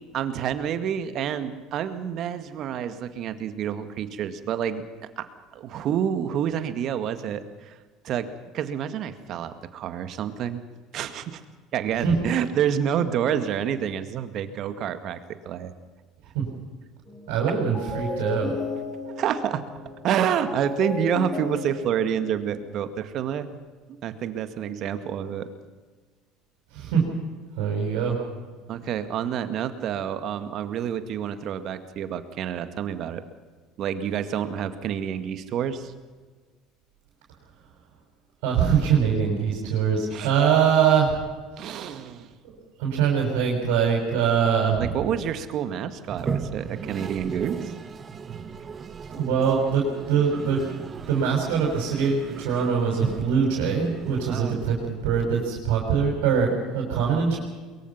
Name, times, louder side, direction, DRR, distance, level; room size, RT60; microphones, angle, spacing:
voice 1, 0.1-4.8 5.2-5.3 5.5-7.8 8.0-8.3 8.5-10.6 10.9-11.4 11.7-15.2 15.5-15.7 19.2-19.6 20.0-23.5 23.9-25.5 28.7-33.2 33.8-35.9 40.1-40.3 41.6-42.3 44.8-47.7 54.3-54.6, right 9 dB, 55° right, 10 dB, 2.0 m, -28 dB
Pleasant pluck with reverb, 17.1-17.4 17.7-22.9, left 3 dB, 25° left, 7.5 m, -34 dB
voice 2, 17.3-18.5 26.7-27.0 27.6-28.2 38.4-41.2 41.6-41.9 42.8-44.9 49.1-50.6 51.1-57.4, right 7 dB, 70° right, -1 dB, 5.9 m, -23 dB
Toilet flush, 46.1-55.2, right 5 dB, 35° right, 1.7 m, -36 dB
22.5 x 22.5 x 5.8 m, 1.4 s
hypercardioid pair, 75°, 0 cm